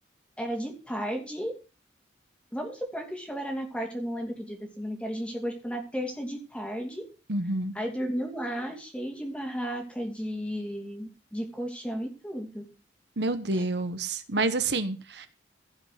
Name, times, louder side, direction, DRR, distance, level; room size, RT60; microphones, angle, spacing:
voice 1, 0.4-1.5 2.5-7.0 7.7-12.6 13.5-13.7, equal, 5° left, 2 dB, 2.8 m, -34 dB
voice 2, 7.3-7.7 13.2-15.3, right 2 dB, 65° right, 10 dB, 1.1 m, -28 dB
16.0 x 5.8 x 6.5 m, 0.34 s
head